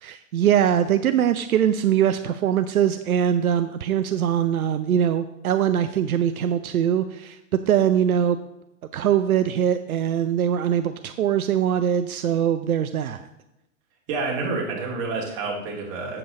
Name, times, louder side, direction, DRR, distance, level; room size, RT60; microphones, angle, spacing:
voice 1, 0.0-7.4 7.7-8.4 8.9-13.3, right 9 dB, 80° right, 10 dB, 0.6 m, -22 dB
voice 2, 14.1-16.2, right 3 dB, 35° right, -2 dB, 2.7 m, -28 dB
7.7 x 7.7 x 3.8 m, 0.91 s
hypercardioid pair, 120°, 42 cm